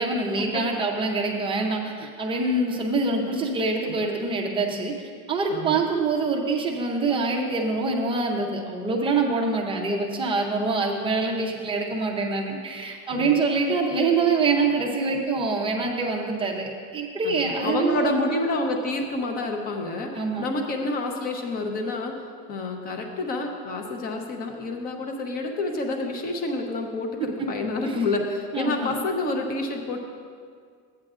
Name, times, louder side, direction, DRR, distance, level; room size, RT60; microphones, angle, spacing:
voice 1, 0.0-4.9 5.3-18.2 20.1-20.5 27.8-28.0 28.5-28.9, right 3 dB, 15° right, 0 dB, 0.6 m, -25 dB
voice 2, 5.5-5.8 13.1-13.4 17.2-22.1 22.5-30.0, left 2 dB, 20° left, 4 dB, 0.7 m, -28 dB
13.0 x 8.9 x 2.4 m, 2.1 s
supercardioid pair, 150°, 42 cm